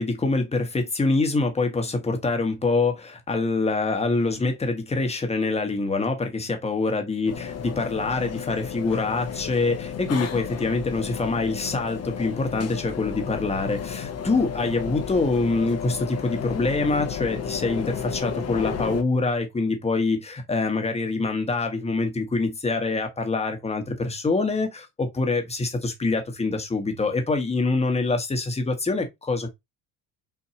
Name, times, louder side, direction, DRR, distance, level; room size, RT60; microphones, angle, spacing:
voice 1, 0.0-29.5, left 3 dB, 15° left, 1.3 m, -25 dB
sound 1, 7.3-19.0, left 7 dB, 40° left, 1.0 m, -33 dB
5.8 x 2.9 x 2.8 m
cardioid pair, 120°, 38 cm